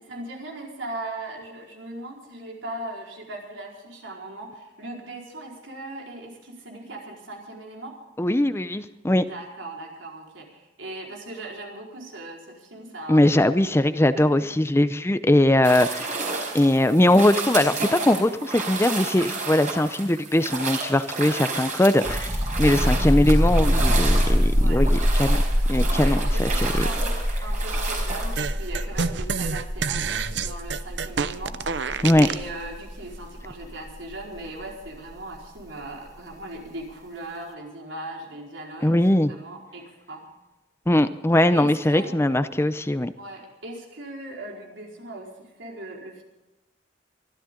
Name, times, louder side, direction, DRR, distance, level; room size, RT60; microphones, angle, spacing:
voice 1, 0.0-8.0 8.8-8.9 9.2-14.6 24.5-24.8 26.0-40.2 41.5-42.1 43.2-46.2, right 2 dB, 80° right, -1 dB, 4.7 m, -39 dB
voice 2, 8.2-9.3 13.1-16.2 16.5-22.3 22.6-25.4 25.7-26.7 32.0-32.3 38.8-39.3 40.9-43.1, left 1 dB, 15° left, 12 dB, 0.6 m, -20 dB
sound 1, 15.6-28.4, right 3 dB, 40° right, 4.8 m, -31 dB
sound 2, 22.0-35.4, equal, 20° right, 1.7 m, -24 dB
sound 3, 28.4-32.5, right 5 dB, 65° right, 0.7 m, -28 dB
24.0 x 13.5 x 3.8 m, 1.0 s
head